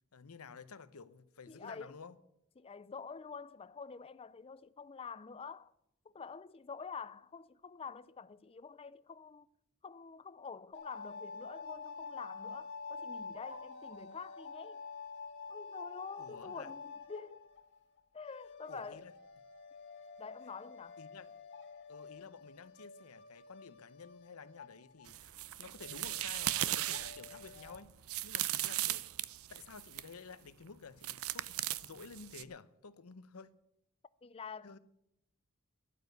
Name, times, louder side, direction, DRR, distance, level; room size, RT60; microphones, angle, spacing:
voice 1, 0.1-2.2 16.2-16.7 18.7-19.1 21.0-21.3 21.9-28.0 28.2-29.1 29.5-33.5 34.6-34.8, left 5 dB, 85° left, 0.8 m, -52 dB
voice 2, 1.5-1.9 2.6-5.7 6.0-9.5 9.8-14.8 15.5-17.5 18.1-19.1 20.2-21.0 34.2-34.8, left 5 dB, 25° left, 0.4 m, -47 dB
sound 1, 10.7-25.1 25.4-25.5 25.8-27.8, left 4 dB, 55° left, 1.7 m, -48 dB
sound 2, 25.1-30.1 31.0-32.4, right 14 dB, 75° right, 0.5 m, -37 dB
11.5 x 9.4 x 8.1 m
head